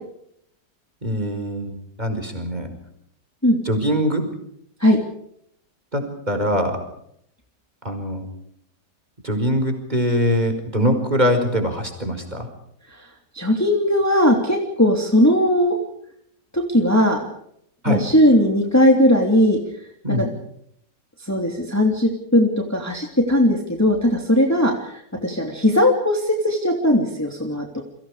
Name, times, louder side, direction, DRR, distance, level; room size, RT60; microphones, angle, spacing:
voice 1, 1.0-2.7 3.7-4.2 5.9-6.8 7.8-8.3 9.2-12.5 17.8-18.0 20.0-20.3, equal, 25° right, 6 dB, 5.2 m, -22 dB
voice 2, 13.3-15.8 16.5-17.2 17.8-19.6 20.1-20.2 21.3-27.8, left 1 dB, 10° left, 2 dB, 3.0 m, -18 dB
30.0 x 24.5 x 5.1 m, 0.72 s
omnidirectional pair, 1.9 m